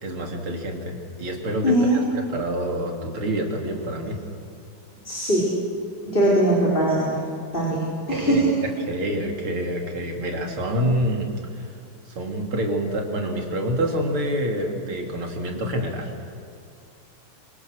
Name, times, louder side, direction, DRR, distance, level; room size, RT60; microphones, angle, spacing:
voice 1, 0.0-4.2 8.1-11.7 12.1-16.1, right 1 dB, 80° right, 2 dB, 3.7 m, -27 dB
voice 2, 1.6-2.0 5.0-5.5 6.1-7.2 7.5-7.8 8.1-8.4, right 1 dB, 25° left, -5 dB, 4.6 m, -20 dB
25.5 x 25.0 x 6.6 m, 2.4 s
omnidirectional pair, 2.3 m